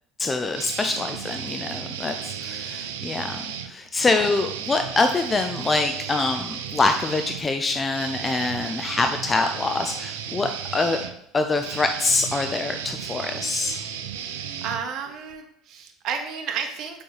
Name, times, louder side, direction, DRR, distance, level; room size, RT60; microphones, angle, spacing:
voice 1, 0.2-11.0 11.3-13.8, left 3 dB, 25° left, 6 dB, 0.6 m, -25 dB
sound 1, 0.5-3.7 4.2-15.3, right 9 dB, 85° right, 0.6 m, -34 dB
voice 2, 3.9-4.3 14.2-14.3 14.6-17.0, right 7 dB, 60° right, 5 dB, 1.2 m, -32 dB
6.9 x 5.4 x 3.3 m, 0.79 s
hypercardioid pair, 80°, 0 cm